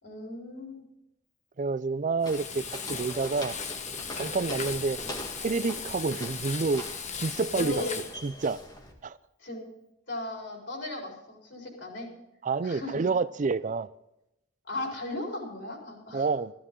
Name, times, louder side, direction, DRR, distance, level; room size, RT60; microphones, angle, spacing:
voice 1, 0.0-0.9 7.5-7.9 9.4-9.6 10.1-12.1 12.6-13.0 14.6-16.3, left 2 dB, 65° left, 4.3 m, -36 dB
voice 2, 1.6-3.6 4.1-5.0 5.4-6.9 7.1-7.8 8.2-8.6 9.0-9.2 12.4-13.9 16.1-16.5, right 4 dB, 40° right, 0.4 m, -28 dB
Frying (food), 2.2-8.1, left 6 dB, 35° left, 1.0 m, -37 dB
Walk footsteps, 2.2-8.9, equal, 20° left, 1.7 m, -42 dB
15.0 x 13.5 x 3.8 m
head